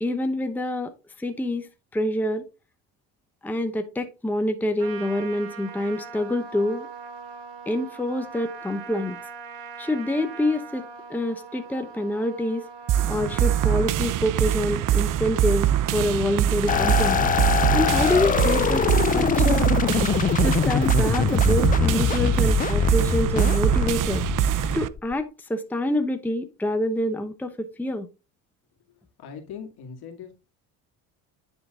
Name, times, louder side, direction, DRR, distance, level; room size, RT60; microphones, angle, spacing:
voice 1, 0.0-0.9 1.2-2.4 3.4-6.9 7.7-9.2 9.8-12.7 13.1-17.3 17.7-18.8 19.1-19.7 20.4-24.2 24.7-28.1, left 1 dB, 5° left, 7 dB, 0.8 m, -26 dB
Trumpet, 4.8-13.9, right 5 dB, 80° right, 1.5 m, -41 dB
sound 1, 12.9-24.9, right 11 dB, 50° right, 0.6 m, -23 dB
sound 2, 16.7-25.1, left 8 dB, 20° left, 0.3 m, -23 dB
voice 2, 29.2-30.3, left 7 dB, 65° left, 4 dB, 2.1 m, -39 dB
9.6 x 3.9 x 3.6 m, 0.29 s
supercardioid pair, 80°, 41 cm